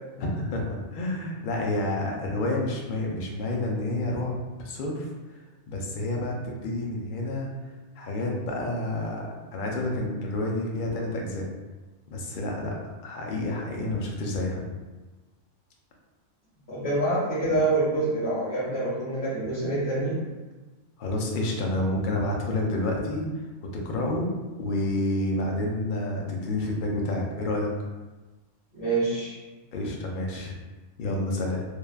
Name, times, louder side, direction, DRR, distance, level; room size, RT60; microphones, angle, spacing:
voice 1, 0.2-5.1 5.7-7.5 8.0-11.5 12.1-12.7 13.0-14.6 21.0-23.3 23.8-24.3 24.6-27.7 29.7-30.5 31.0-31.6, left 1 dB, 60° left, -1 dB, 0.5 m, -29 dB
voice 2, 16.7-20.2 28.7-29.3, right 2 dB, 20° left, -12 dB, 1.4 m, -26 dB
3.2 x 2.2 x 2.3 m, 1.2 s
omnidirectional pair, 1.3 m